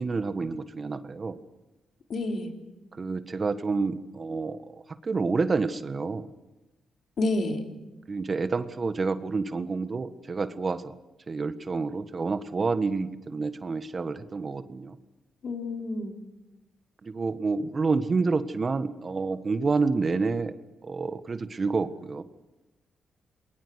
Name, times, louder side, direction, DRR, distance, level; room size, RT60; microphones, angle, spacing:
voice 1, 0.0-1.4 3.0-6.3 8.1-10.9 11.3-15.0 17.0-20.5 20.8-22.2, right 4 dB, 45° right, 11 dB, 1.5 m, -28 dB
voice 2, 2.1-2.6 7.2-7.6 15.4-16.2, left 2 dB, 60° left, 3 dB, 3.7 m, -29 dB
27.5 x 21.0 x 6.5 m, 1.0 s
supercardioid pair, 50°, 0 cm